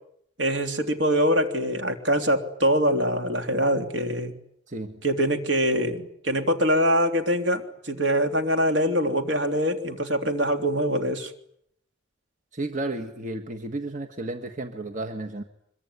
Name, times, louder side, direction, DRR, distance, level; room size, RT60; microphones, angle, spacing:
voice 1, 0.4-4.3 5.0-11.3, equal, 65° right, 6 dB, 3.3 m, -24 dB
voice 2, 4.7-5.0 12.5-15.4, right 2 dB, 40° right, 4 dB, 1.7 m, -33 dB
25.0 x 23.0 x 9.8 m, 0.70 s
head